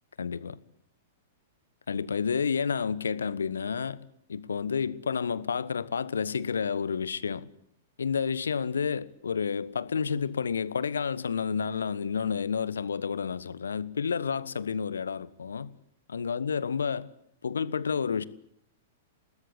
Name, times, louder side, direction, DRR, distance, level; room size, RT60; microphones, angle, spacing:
voice 1, 0.2-0.6 1.9-7.5 8.0-15.7 16.1-17.1 17.4-18.2, left 6 dB, 70° left, 1.3 m, -30 dB
29.5 x 19.5 x 8.6 m
figure-of-eight pair, 105°, 0 cm